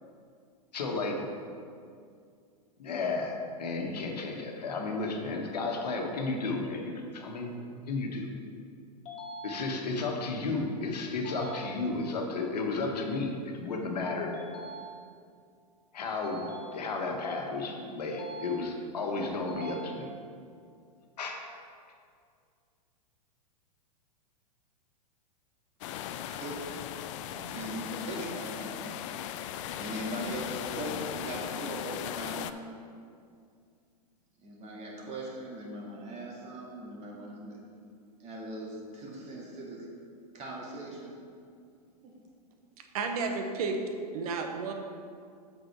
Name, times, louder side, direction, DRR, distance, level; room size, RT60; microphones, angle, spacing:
voice 1, 0.7-1.2 2.8-7.5 7.9-8.3 9.4-14.3 15.9-16.4 16.7-20.1 21.2-21.4, left 3 dB, 75° left, 1 dB, 1.4 m, -33 dB
sound 1, 9.1-10.1 11.2-12.2 14.3-15.4 16.2-17.3 18.1-19.0 19.5-20.5, right 1 dB, 30° left, 2.0 m, -45 dB
sound 2, 25.8-32.5, left 10 dB, 50° left, 0.4 m, -38 dB
voice 2, 26.2-26.8 27.2-28.8 29.3-32.6 34.4-37.6 38.2-39.9 40.3-41.1 42.0-42.2, right 1 dB, 30° right, -2 dB, 2.0 m, -40 dB
voice 3, 42.9-43.8 44.1-44.7, right 4 dB, 60° right, 4 dB, 1.1 m, -31 dB
7.8 x 6.1 x 4.6 m, 2.3 s
hypercardioid pair, 105°, 21 cm